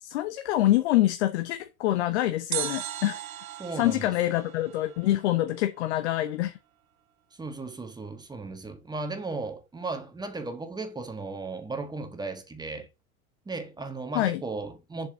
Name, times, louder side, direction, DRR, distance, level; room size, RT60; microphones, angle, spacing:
voice 1, 0.0-3.2 3.8-6.6 14.1-14.4, left 15 dB, 50° left, 0.9 m, -26 dB
sound 1, 2.5-5.6 5.8-5.9, right 11 dB, 75° right, 0.7 m, -37 dB
voice 2, 3.6-4.1 7.3-12.9 13.4-15.1, right 3 dB, 10° right, 1.4 m, -36 dB
7.4 x 6.4 x 3.9 m
figure-of-eight pair, 85°, 42 cm